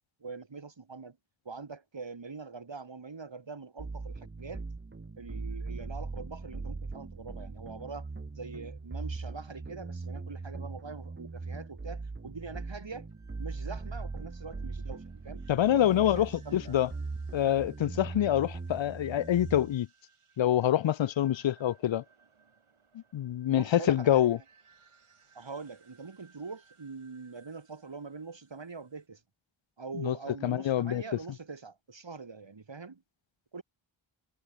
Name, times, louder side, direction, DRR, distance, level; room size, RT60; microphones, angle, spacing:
voice 1, 0.2-1.2 1.5-4.6 5.2-13.1 13.4-16.8 18.2-18.4 23.5-24.3 25.3-29.2 29.8-33.0 33.5-33.6, right 4 dB, 60° right, 5.2 m, -43 dB
sound 1, 3.8-19.7, right 3 dB, 25° right, 0.9 m, -40 dB
sound 2, 13.1-29.1, right 5 dB, 85° right, 5.5 m, -64 dB
voice 2, 15.5-16.9 17.3-19.9 20.4-22.0 23.1-24.4 30.0-30.1 30.4-31.0, left 11 dB, 65° left, 0.5 m, -26 dB
wide cardioid pair, 75°, 50 cm